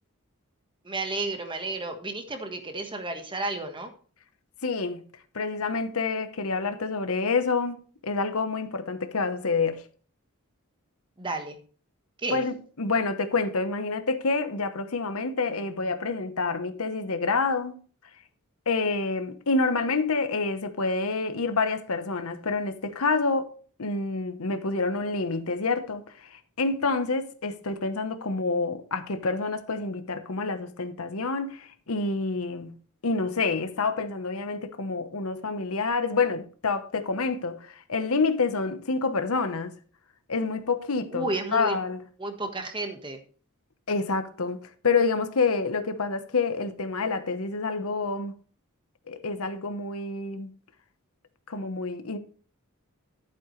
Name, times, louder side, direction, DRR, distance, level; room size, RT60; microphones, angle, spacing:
voice 1, 0.8-3.9 11.2-11.6 12.2-12.4 41.1-41.8 42.2-43.2, right 2 dB, 20° right, 1.3 m, -32 dB
voice 2, 4.6-5.0 5.3-9.8 12.3-17.8 18.7-23.5 23.8-32.8 33.0-39.7 40.3-42.0 43.9-48.3 49.1-50.5 51.5-52.2, left 4 dB, 70° left, 1.0 m, -28 dB
11.0 x 8.6 x 3.2 m
head